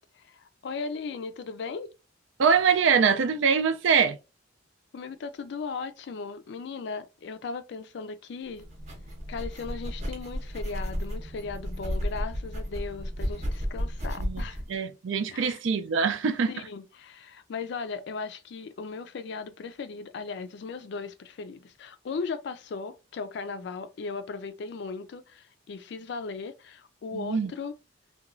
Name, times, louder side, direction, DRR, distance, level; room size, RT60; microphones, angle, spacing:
voice 1, 0.2-1.9 4.9-8.7 9.3-14.6 15.3-15.6 16.5-27.7, left 4 dB, 60° left, 0.3 m, -37 dB
voice 2, 2.4-4.2 14.2-16.5 27.1-27.5, right 6 dB, 70° right, 0.4 m, -24 dB
sound 1, 8.5-14.7, equal, 35° right, 0.7 m, -33 dB
2.9 x 2.2 x 2.5 m
head